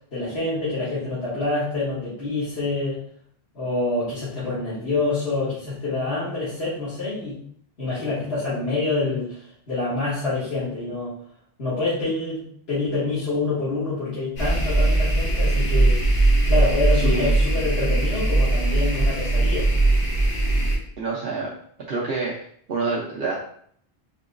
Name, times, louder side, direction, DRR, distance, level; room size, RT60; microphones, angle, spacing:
voice 1, 0.1-3.0 3.5-7.4 7.8-9.4 9.7-11.1 11.6-12.4 12.7-16.0 16.5-19.7, left 2 dB, 75° left, -13 dB, 1.8 m, -26 dB
sound 1, 14.4-20.8, right 2 dB, 60° left, 1.2 m, -20 dB
voice 2, 17.0-17.3 21.0-21.5 21.9-22.4 22.7-23.4, right 3 dB, 70° right, -4 dB, 0.9 m, -27 dB
4.5 x 2.8 x 2.5 m, 0.62 s
omnidirectional pair, 1.0 m